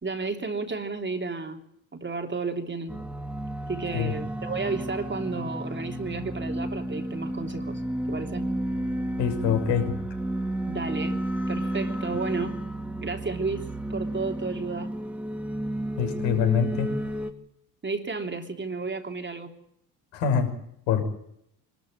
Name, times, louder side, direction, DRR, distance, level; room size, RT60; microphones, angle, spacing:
voice 1, 0.0-1.6 1.9-3.0 3.7-7.8 8.1-8.4 10.7-11.2 11.5-12.6 13.0-13.6 13.9-14.9 17.8-19.5, right 3 dB, 25° right, 4 dB, 3.4 m, -32 dB
sound 1, 2.9-17.3, right 1 dB, 5° right, 2.9 m, -32 dB
voice 2, 9.2-9.9 16.0-16.9 20.1-20.5 20.9-21.0, left 7 dB, 65° left, 4 dB, 6.2 m, -24 dB
25.5 x 13.5 x 9.1 m, 0.74 s
hypercardioid pair, 60°, 48 cm